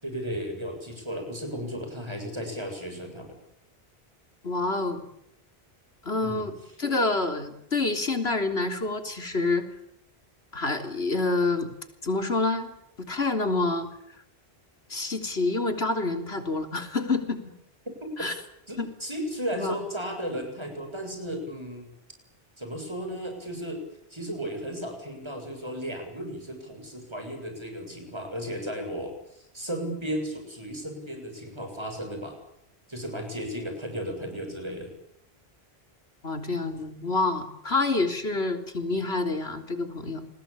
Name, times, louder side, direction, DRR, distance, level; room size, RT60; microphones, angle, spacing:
voice 1, 0.0-3.4 6.2-6.4 18.0-18.3 18.7-21.9 22.6-23.8 24.1-32.4 32.9-34.9, equal, 25° right, 5 dB, 7.8 m, -35 dB
voice 2, 4.4-5.0 6.1-9.7 10.5-11.7 12.0-12.7 13.0-13.9 14.9-17.4 18.2-18.3 18.8-18.9 19.5-19.8 36.2-40.3, left 3 dB, 90° left, 7 dB, 3.7 m, -27 dB
29.5 x 21.0 x 8.7 m, 0.75 s
omnidirectional pair, 1.0 m